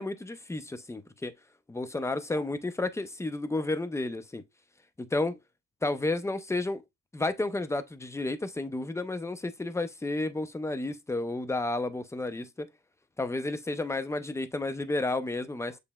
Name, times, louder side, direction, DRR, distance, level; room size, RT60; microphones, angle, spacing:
voice 1, 0.0-1.3 1.7-4.4 5.0-5.4 5.8-6.8 7.1-12.7 13.2-15.8, left 2 dB, 10° left, 0.6 m, -31 dB
7.1 x 3.3 x 2.3 m
cardioid pair, 90°, 30 cm